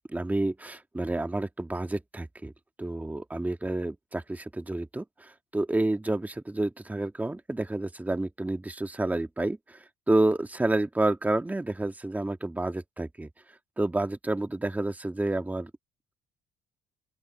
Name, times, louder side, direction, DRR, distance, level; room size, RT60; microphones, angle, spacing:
voice 1, 0.0-2.5 2.8-13.3 13.8-15.7, right 2 dB, 10° right, 1.8 m, -29 dB
open air
cardioid pair, 110°, 17 cm